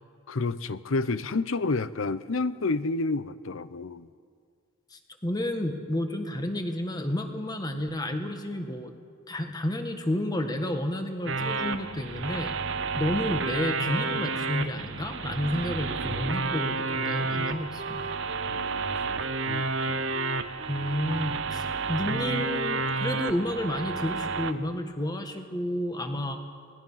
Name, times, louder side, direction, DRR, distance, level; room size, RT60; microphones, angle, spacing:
voice 1, 0.3-4.1 16.1-16.2 18.5-19.2 19.5-20.0, left 3 dB, 80° left, 15 dB, 0.8 m, -30 dB
voice 2, 4.9-8.9 9.3-12.6 13.0-18.1 20.7-26.4, left 1 dB, 20° left, 5 dB, 1.6 m, -31 dB
sound 1, 11.3-24.5, right 4 dB, 65° right, 0.9 m, -30 dB
Wind instrument woodwind instrument, 15.4-22.6, right 3 dB, 30° right, 0.6 m, -44 dB
26.5 x 19.5 x 5.7 m, 2.1 s
head